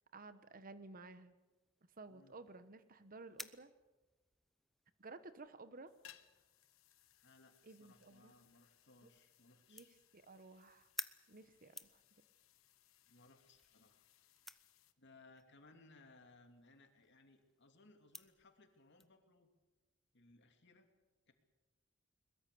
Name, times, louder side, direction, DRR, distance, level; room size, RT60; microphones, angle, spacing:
voice 1, 0.1-1.3 2.0-3.7 5.0-5.9 7.6-8.3 9.0-9.1 9.7-9.9 10.1-10.9 11.3-12.0, right 3 dB, 45° right, 12 dB, 1.1 m, -54 dB
sound 1, 1.4-19.1, left 1 dB, ahead, 0.7 m, -57 dB
sound 2, 5.9-14.9, left 11 dB, 85° left, 1.2 m, -67 dB
voice 2, 7.2-9.9 13.1-14.0 15.0-19.5 20.1-20.9 21.3-21.4, left 2 dB, 60° left, 5 dB, 2.9 m, -65 dB
22.5 x 21.0 x 7.0 m, 1.1 s
head